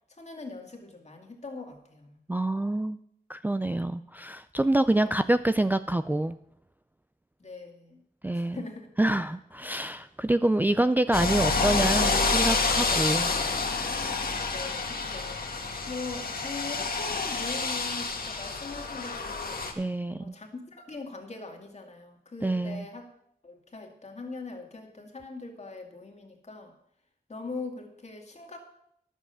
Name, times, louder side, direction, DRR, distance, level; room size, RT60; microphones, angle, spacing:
voice 1, 0.1-2.2 7.4-8.0 8.3-8.9 14.5-15.4 15.9-19.6 20.2-23.1 23.4-26.7 27.3-28.6, left 3 dB, 45° left, 3 dB, 2.2 m, -41 dB
voice 2, 2.3-3.0 3.3-6.3 8.2-8.6 9.0-13.3 19.8-20.3 22.4-22.9, right 1 dB, 10° right, 11 dB, 0.4 m, -26 dB
sound 1, 11.1-19.7, left 4 dB, 70° left, 1.6 m, -28 dB
11.0 x 7.3 x 6.9 m, 0.72 s
wide cardioid pair, 90°, 16 cm